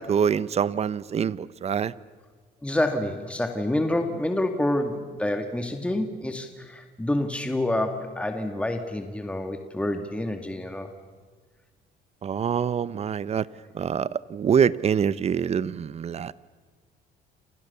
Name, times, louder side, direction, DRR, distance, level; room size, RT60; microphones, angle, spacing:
voice 1, 0.0-1.9 12.2-13.5 13.7-16.3, right 7 dB, 40° right, 18 dB, 1.0 m, -25 dB
voice 2, 2.6-10.9, left 1 dB, 5° left, 6 dB, 2.3 m, -28 dB
29.5 x 28.0 x 7.0 m, 1.5 s
cardioid pair, 110°, 17 cm